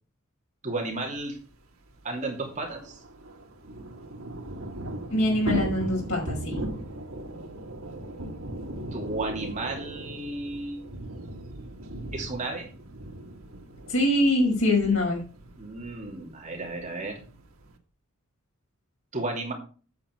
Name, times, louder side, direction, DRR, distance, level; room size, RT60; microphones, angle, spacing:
voice 1, 0.6-1.4 2.0-3.0 8.9-10.8 12.1-12.7 15.6-17.2 19.1-19.5, right 2 dB, 35° right, 0 dB, 2.8 m, -33 dB
Thunder / Rain, 1.2-1.3 1.5-1.6 1.9-17.8, right 1 dB, 85° right, 1.7 m, -38 dB
voice 2, 5.1-6.6 13.9-15.2, left 1 dB, 65° left, -1 dB, 5.6 m, -23 dB
8.7 x 8.0 x 4.7 m, 0.38 s
head